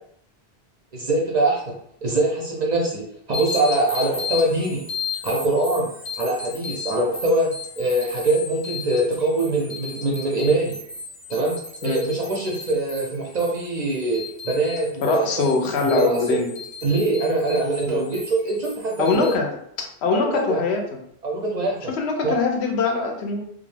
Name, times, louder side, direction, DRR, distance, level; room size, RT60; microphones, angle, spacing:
voice 1, 0.9-1.7 2.0-3.0 3.3-4.8 5.2-5.9 6.2-10.8 11.3-11.6 11.8-15.4 15.8-16.4 16.8-19.3 20.1-20.6 21.2-21.8 22.2-22.3, right 2 dB, 50° right, -2 dB, 0.5 m, -23 dB
sound 1, 3.3-19.3, left 4 dB, 55° left, 0.7 m, -35 dB
voice 2, 15.0-16.5 17.9-18.1 19.0-19.5 20.0-20.8 21.9-23.6, left 4 dB, 80° left, 2 dB, 0.8 m, -23 dB
2.3 x 2.1 x 3.1 m, 0.68 s
omnidirectional pair, 1.1 m